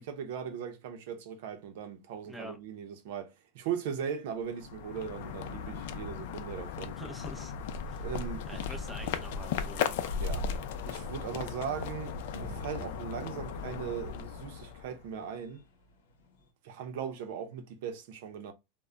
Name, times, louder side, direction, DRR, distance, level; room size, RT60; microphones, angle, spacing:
voice 1, 0.0-7.0 8.0-8.7 10.2-10.5 10.8-15.6 16.6-18.5, right 7 dB, 65° right, 0.6 m, -39 dB
sound 1, 4.4-15.1, left 6 dB, 65° left, 0.4 m, -37 dB
voice 2, 7.0-7.5 7.8-8.1 8.5-9.8, equal, 5° right, 0.5 m, -45 dB
sound 2, 11.1-16.5, right 1 dB, 80° left, 0.8 m, -53 dB
2.1 x 2.1 x 3.6 m
supercardioid pair, 150°, 0 cm